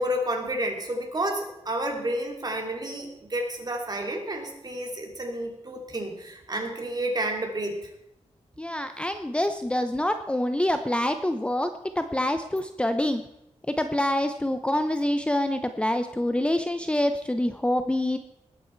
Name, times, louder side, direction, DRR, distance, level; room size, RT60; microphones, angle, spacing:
voice 1, 0.0-7.9, right 1 dB, 35° right, 2 dB, 2.8 m, -30 dB
voice 2, 8.6-11.7 12.0-13.2 13.7-18.2, left 1 dB, 10° left, 8 dB, 0.7 m, -26 dB
19.5 x 9.0 x 4.5 m, 0.84 s
wide cardioid pair, 100°, 12 cm